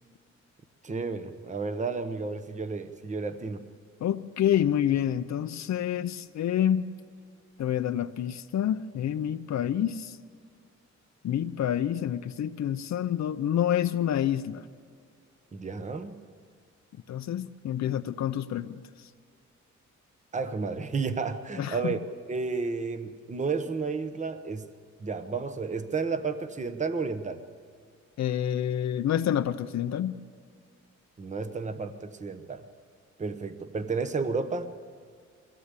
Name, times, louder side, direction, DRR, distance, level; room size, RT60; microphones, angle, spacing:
voice 1, 0.8-3.7 15.5-16.2 20.3-22.0 22.3-24.7 25.0-27.4 31.2-32.6 33.2-34.7, right 4 dB, 25° right, 10 dB, 1.0 m, -32 dB
voice 2, 4.0-6.9 7.6-10.2 11.2-14.6 17.1-19.1 21.6-21.9 28.2-30.2, left 10 dB, 65° left, 9 dB, 0.7 m, -28 dB
22.5 x 17.0 x 8.3 m, 2.1 s
wide cardioid pair, 140°, 29 cm